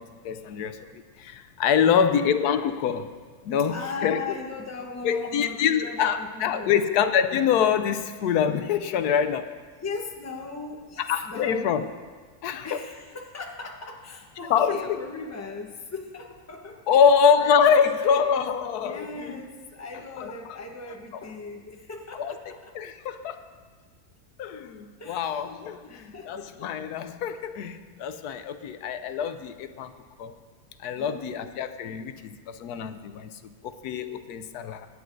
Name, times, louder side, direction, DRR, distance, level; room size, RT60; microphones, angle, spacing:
voice 1, 0.0-3.1 3.4-4.2 5.0-9.5 11.0-11.9 12.4-12.7 14.5-15.0 16.9-19.5 20.2-20.6 22.1-22.3 22.7-23.5 24.4-29.9 30.2-30.3 30.8-33.3 33.6-34.9, left 7 dB, 80° left, 9 dB, 1.1 m, -25 dB
voice 2, 1.8-2.3 3.7-6.8 9.8-11.9 12.6-17.0 17.4-18.3 18.8-22.7 25.0-25.4 25.8-26.7 31.0-31.6 32.2-32.3, left 3 dB, 15° left, 2 dB, 0.8 m, -38 dB
22.5 x 9.7 x 2.6 m, 1.5 s
omnidirectional pair, 1.6 m